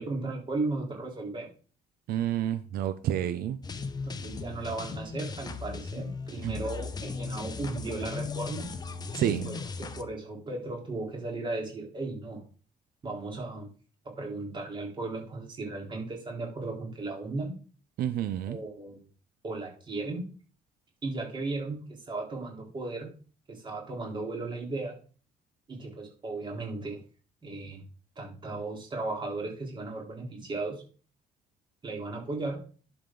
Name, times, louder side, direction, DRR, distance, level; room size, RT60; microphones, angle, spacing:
voice 1, 0.0-1.5 4.1-8.7 9.2-12.4 13.0-13.7 14.0-17.6 18.5-19.0 19.4-20.3 21.0-23.1 23.5-25.0 25.7-27.0 27.4-27.8 28.2-30.8 31.8-32.6, right 3 dB, 30° right, 0 dB, 3.8 m, -36 dB
voice 2, 2.1-3.6 6.4-6.5 9.1-9.5 18.0-18.6, right 11 dB, 80° right, 11 dB, 0.7 m, -29 dB
sound 1, 3.6-10.0, left 5 dB, 25° left, 0.8 m, -37 dB
11.0 x 7.0 x 3.9 m, 0.39 s
cardioid pair, 150°, 15 cm